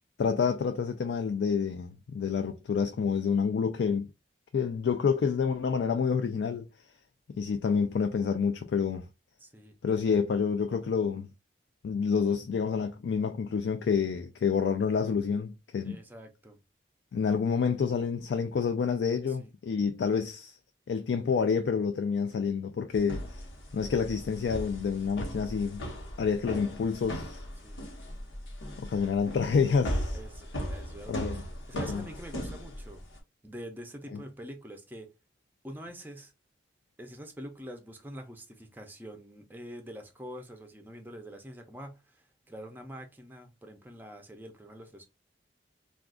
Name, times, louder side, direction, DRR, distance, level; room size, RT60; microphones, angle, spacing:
voice 1, 0.2-4.1 4.5-6.6 7.4-9.1 9.8-11.3 11.8-16.0 17.1-20.6 20.9-23.4 23.7-25.8 26.2-27.5 28.8-30.2 31.1-31.4 31.7-32.0, left 6 dB, 70° left, 0.3 m, -28 dB
voice 2, 9.4-9.8 15.8-16.6 19.3-19.5 27.6-27.9 30.1-33.0 33.4-35.1 35.6-36.3 37.0-45.0, equal, 10° right, 0.5 m, -45 dB
sound 1, 22.9-33.2, equal, 85° left, 1.0 m, -38 dB
2.3 x 2.3 x 3.5 m
head